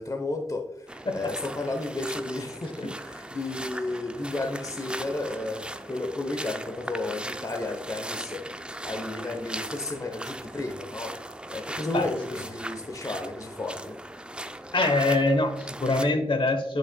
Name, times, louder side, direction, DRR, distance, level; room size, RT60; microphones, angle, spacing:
voice 1, 0.0-8.5 8.8-11.2 11.5-14.0, left 2 dB, 35° left, 0.8 m, -33 dB
sound 1, 0.9-16.0, right 1 dB, 10° right, 0.4 m, -39 dB
voice 2, 14.7-16.8, left 2 dB, 55° left, 1.1 m, -24 dB
8.5 x 6.3 x 2.2 m
wide cardioid pair, 90°, 10 cm